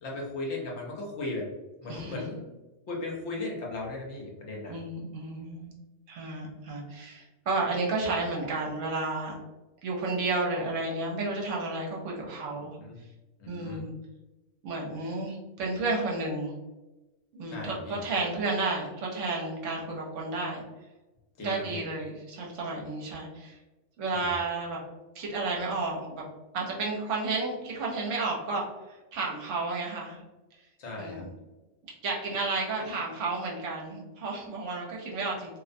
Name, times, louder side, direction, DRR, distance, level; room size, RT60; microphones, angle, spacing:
voice 1, 0.0-1.5 1.8-2.5 2.9-4.7 12.8-13.0 13.4-13.8 17.5-18.0 21.4-21.8 24.1-24.3 30.8-31.2, left 2 dB, 65° left, -2 dB, 0.9 m, -36 dB
voice 2, 1.9-2.2 4.7-5.7 6.1-9.4 9.8-12.8 13.5-13.9 14.6-16.5 17.3-20.6 21.4-23.6 24.0-24.8 25.1-26.2 26.5-30.2 31.0-31.3 32.0-35.6, right 3 dB, 70° right, -2 dB, 1.0 m, -32 dB
2.5 x 2.1 x 2.5 m, 1.1 s
omnidirectional pair, 1.4 m